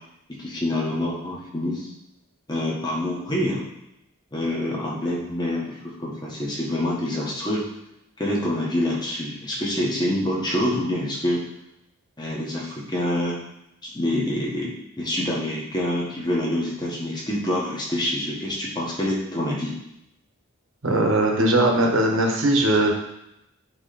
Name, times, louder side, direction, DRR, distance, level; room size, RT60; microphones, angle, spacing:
voice 1, 0.4-1.9 2.5-3.6 4.3-7.6 8.2-11.4 12.2-13.4 13.8-19.8, left 1 dB, 20° left, -4 dB, 1.5 m, -26 dB
voice 2, 20.8-22.9, right 1 dB, 65° right, 1 dB, 1.3 m, -19 dB
9.7 x 3.3 x 4.2 m, 0.81 s
head